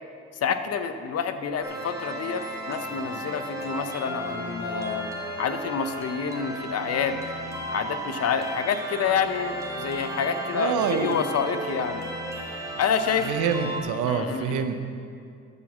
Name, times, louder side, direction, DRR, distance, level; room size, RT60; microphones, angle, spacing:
voice 1, 0.4-5.1 5.4-7.2 7.7-12.1 12.8-13.3 14.1-14.6, left 6 dB, 55° left, 9 dB, 0.8 m, -28 dB
sound 1, 1.6-13.8, right 1 dB, 10° right, 1.6 m, -34 dB
voice 2, 10.5-11.2 13.2-14.8, right 6 dB, 85° right, 8 dB, 0.8 m, -26 dB
11.0 x 4.8 x 7.3 m, 2.3 s
cardioid pair, 90°, 30 cm